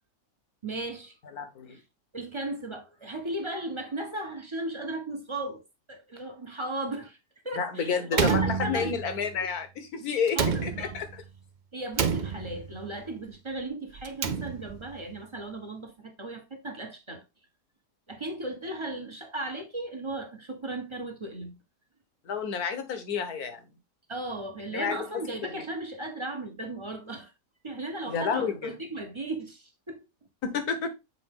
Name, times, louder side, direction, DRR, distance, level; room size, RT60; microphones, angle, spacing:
voice 1, 0.6-1.1 1.7-1.8 2.1-5.6 5.9-7.2 7.4-9.0 9.4-9.5 10.3-10.9 11.7-17.2 18.1-21.6 24.1-27.3 27.6-30.0, right 1 dB, 20° right, 1.0 m, -36 dB
voice 2, 1.4-1.8 7.6-11.2 22.3-23.6 24.7-25.0 28.1-28.8 30.4-30.9, left 6 dB, 65° left, 1.7 m, -30 dB
Slam, 8.1-9.3 10.3-11.2 11.9-12.8 14.0-14.9, right 6 dB, 65° right, 0.4 m, -29 dB
7.1 x 4.2 x 3.6 m
omnidirectional pair, 1.7 m